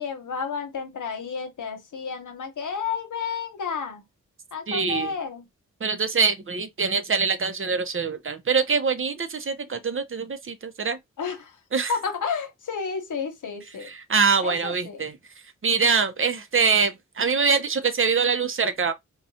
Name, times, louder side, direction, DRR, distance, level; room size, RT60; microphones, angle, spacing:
voice 1, 0.0-4.0 4.5-5.4 11.2-11.5 11.9-13.9 14.4-15.0, left 5 dB, 80° left, 1.0 m, -31 dB
voice 2, 4.7-5.1 5.8-11.0 11.7-11.9 13.9-15.1 15.6-18.9, right 5 dB, 45° right, 0.6 m, -24 dB
4.2 x 2.3 x 2.7 m
cardioid pair, 55°, 30 cm